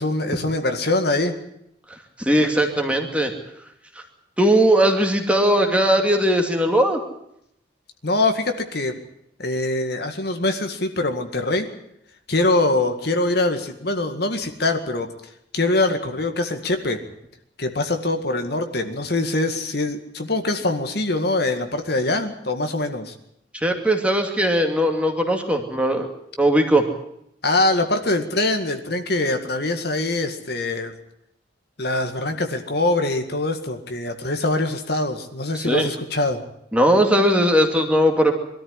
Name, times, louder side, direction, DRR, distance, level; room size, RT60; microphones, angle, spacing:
voice 1, 0.0-1.3 8.0-9.0 9.4-11.7 12.3-15.1 15.5-17.0 17.6-23.1 27.4-30.9 31.8-36.4, left 2 dB, 55° left, 6 dB, 2.0 m, -23 dB
voice 2, 2.2-3.3 4.4-7.0 23.5-26.1 26.4-26.8 35.5-35.9 36.7-38.3, right 1 dB, 5° right, 3 dB, 2.5 m, -19 dB
22.5 x 13.5 x 9.8 m, 0.77 s
head